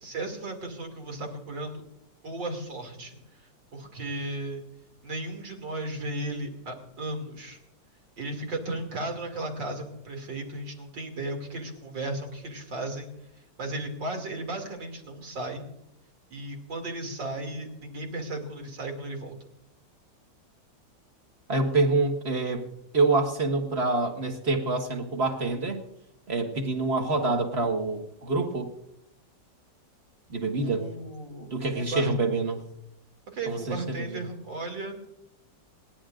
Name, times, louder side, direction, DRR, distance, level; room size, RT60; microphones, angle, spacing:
voice 1, 0.0-1.8 2.2-3.2 3.7-4.6 5.0-7.6 8.2-13.1 13.6-15.7 16.3-19.4 30.6-32.2 33.3-35.1, right 2 dB, 75° right, 3 dB, 3.3 m, -35 dB
voice 2, 21.5-22.6 22.9-25.8 26.3-28.7 30.3-30.9 31.4-32.6 33.5-34.2, right 3 dB, 35° right, 3 dB, 1.8 m, -26 dB
28.5 x 11.0 x 2.5 m, 0.80 s
omnidirectional pair, 2.0 m